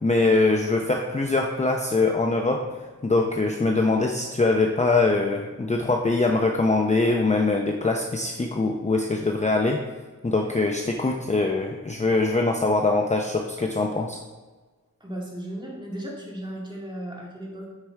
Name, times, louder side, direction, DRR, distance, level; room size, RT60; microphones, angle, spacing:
voice 1, 0.0-2.6 3.0-9.8 10.2-14.2, left 3 dB, 20° left, 2 dB, 0.6 m, -23 dB
voice 2, 15.0-17.7, right 1 dB, 15° right, -3 dB, 2.2 m, -35 dB
8.2 x 4.9 x 4.4 m, 1.3 s
wide cardioid pair, 65°, 32 cm